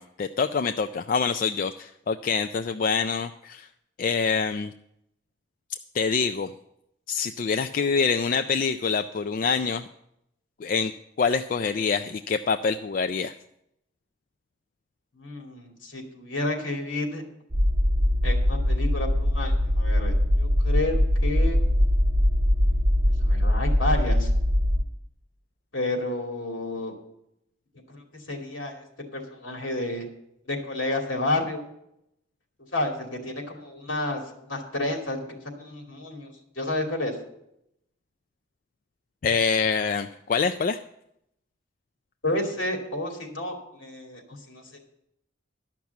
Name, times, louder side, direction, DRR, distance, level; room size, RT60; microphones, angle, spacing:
voice 1, 0.0-3.7 4.0-4.7 5.7-6.5 7.1-9.9 10.6-10.9 11.2-13.3 39.2-40.8, left 5 dB, 45° left, 8 dB, 0.3 m, -26 dB
voice 2, 15.2-17.2 18.2-21.7 23.2-24.3 25.7-26.9 27.9-28.0 28.3-30.0 30.5-31.6 32.7-37.1 42.2-44.2 44.5-44.8, left 2 dB, 75° left, 2 dB, 2.6 m, -31 dB
sound 1, 17.5-24.8, left 1 dB, 50° right, 1.2 m, -22 dB
12.0 x 6.0 x 8.2 m, 0.79 s
head